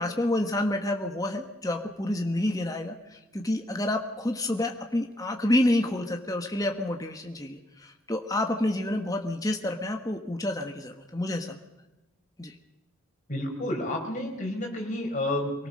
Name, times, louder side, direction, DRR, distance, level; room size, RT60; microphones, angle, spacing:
voice 1, 0.0-11.6 12.4-12.5, left 1 dB, 15° left, 4 dB, 1.3 m, -28 dB
voice 2, 13.3-15.7, left 1 dB, 35° left, 1 dB, 4.8 m, -30 dB
24.5 x 18.5 x 6.4 m, 1.0 s
head